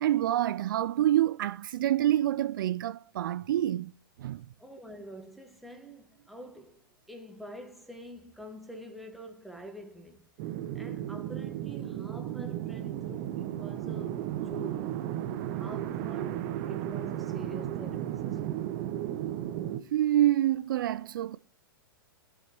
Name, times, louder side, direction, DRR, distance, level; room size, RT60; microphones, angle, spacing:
voice 1, 0.0-3.9 4.2-4.5 19.9-21.4, right 13 dB, 65° right, 0.4 m, -27 dB
voice 2, 4.6-10.3 10.7-15.1 15.6-18.7, equal, ahead, 1.5 m, -47 dB
sound 1, 10.4-19.8, right 12 dB, 45° right, 0.9 m, -34 dB
16.5 x 5.6 x 3.0 m
hypercardioid pair, 110°, 12 cm